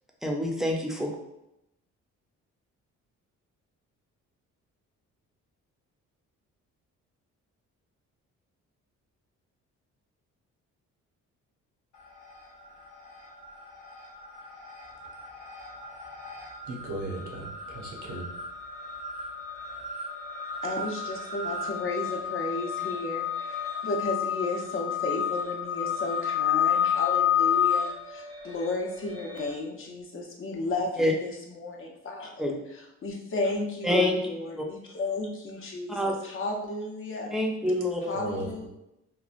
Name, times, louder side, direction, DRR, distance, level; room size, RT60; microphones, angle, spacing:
voice 1, 0.2-1.1 31.0-31.1 32.4-32.5 33.8-34.2 34.6-34.7 35.9-36.1 37.3-38.2, left 1 dB, ahead, 0.5 m, -26 dB
sound 1, 12.0-12.6 12.9-29.5, left 8 dB, 80° left, 0.8 m, -31 dB
voice 2, 16.7-18.3 38.1-38.7, right 2 dB, 80° right, 0.8 m, -36 dB
voice 3, 20.6-32.6 33.0-37.4 38.1-38.7, left 2 dB, 45° left, 0.7 m, -33 dB
3.0 x 2.1 x 2.5 m
cardioid pair, 90°, 30 cm